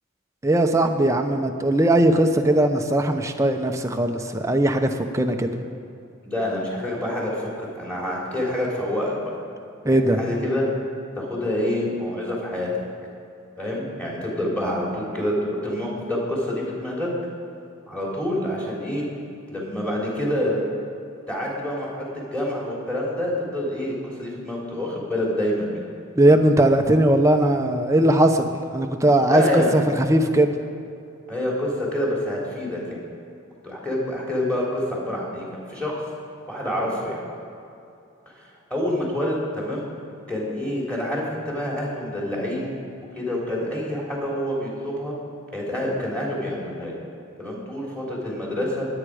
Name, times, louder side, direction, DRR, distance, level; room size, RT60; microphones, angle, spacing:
voice 1, 0.4-5.5 9.8-10.2 26.2-30.5, right 1 dB, 15° right, 5 dB, 0.8 m, -19 dB
voice 2, 6.2-9.3 9.9-10.7 11.1-12.7 13.6-17.1 17.9-19.0 19.5-20.6 21.3-25.8 29.3-29.8 31.3-33.0 33.6-36.0 36.5-37.2 38.3-39.9 40.3-42.7 43.1-45.1 45.5-47.0 47.4-48.9, left 1 dB, 5° left, -4 dB, 3.4 m, -27 dB
22.5 x 9.0 x 4.9 m, 2.6 s
head